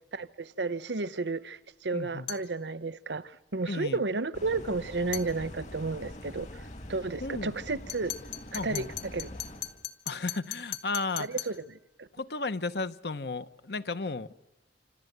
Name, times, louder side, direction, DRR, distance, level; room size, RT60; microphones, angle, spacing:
voice 1, 0.1-6.5 6.9-8.1 8.5-8.9 9.1-9.3 11.2-11.5 12.0-12.1, right 3 dB, 80° right, 1.0 m, -32 dB
voice 2, 1.9-2.3 3.6-4.0 7.2-7.5 8.5-8.9 10.1-11.4 12.1-14.3, left 3 dB, 65° left, 1.0 m, -34 dB
sound 1, 2.3-2.5 5.1-5.3 7.9-11.6, left 12 dB, 85° left, 1.8 m, -39 dB
sound 2, 4.3-9.9, left 1 dB, 40° left, 2.2 m, -44 dB
27.5 x 27.0 x 8.1 m
head